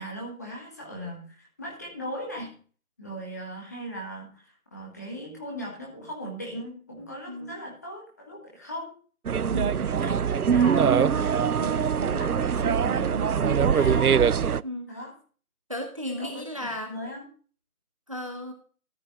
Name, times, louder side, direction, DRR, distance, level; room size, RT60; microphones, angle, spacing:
voice 1, 0.0-2.5 3.0-8.9 9.8-14.2 14.9-15.1 16.1-17.2, equal, 10° left, -2 dB, 1.6 m, -38 dB
sound 1, 9.3-14.6, right 7 dB, 90° right, 0.6 m, -23 dB
voice 2, 9.5-9.9 14.6-14.9 15.7-16.9 18.1-18.5, left 1 dB, 25° right, 5 dB, 1.0 m, -34 dB
13.5 x 7.5 x 4.2 m, 0.41 s
figure-of-eight pair, 165°, 43 cm